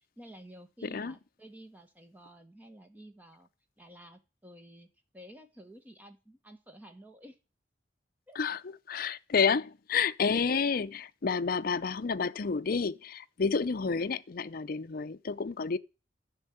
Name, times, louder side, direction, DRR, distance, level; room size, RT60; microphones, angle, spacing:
voice 1, 0.2-3.5 3.8-4.9 5.1-7.4 8.3-8.4, right 1 dB, 10° right, 1.4 m, -52 dB
voice 2, 8.9-15.8, left 5 dB, 50° left, 0.5 m, -30 dB
10.5 x 6.4 x 7.9 m
head